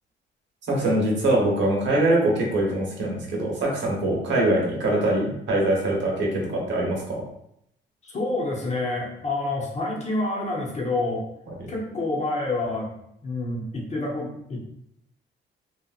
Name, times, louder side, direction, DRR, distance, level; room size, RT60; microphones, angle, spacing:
voice 1, 0.7-7.2, right 1 dB, 65° right, -2 dB, 1.0 m, -23 dB
voice 2, 8.0-11.2 11.7-12.9 13.2-14.6, left 2 dB, 35° left, -3 dB, 0.9 m, -28 dB
2.9 x 2.4 x 2.4 m, 0.76 s
cardioid pair, 90°, 20 cm